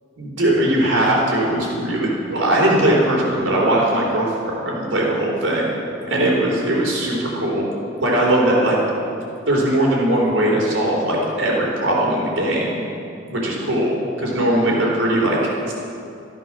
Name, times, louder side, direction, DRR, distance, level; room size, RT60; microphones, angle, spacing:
voice 1, 0.2-4.3 4.6-5.7 6.1-7.7 8.0-8.8 9.5-12.8 13.3-15.4 15.7-15.8, right 1 dB, 90° right, -3 dB, 3.8 m, -19 dB
13.5 x 11.5 x 6.2 m, 2.6 s
head